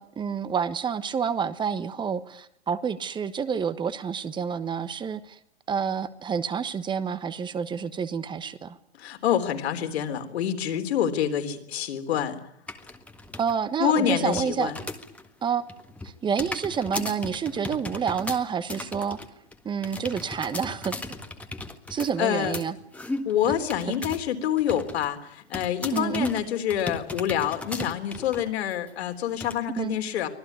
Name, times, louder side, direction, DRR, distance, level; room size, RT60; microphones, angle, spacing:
voice 1, 0.0-5.4 5.7-8.8 13.4-14.7 15.4-15.6 16.0-19.2 19.6-20.9 21.9-22.7 25.9-26.3 29.8-30.0, right 7 dB, 15° right, 14 dB, 1.2 m, -28 dB
voice 2, 9.0-12.4 13.8-14.8 22.2-22.5 23.3-30.3, left 9 dB, 70° left, 6 dB, 3.8 m, -27 dB
sound 1, 12.7-13.5 13.9-15.3 15.6-24.3 24.6-25.1 25.5-28.5 28.9-29.0 29.4-29.6, left 2 dB, 5° left, 1.7 m, -37 dB
25.0 x 18.0 x 9.6 m, 0.73 s
hypercardioid pair, 135°, 33 cm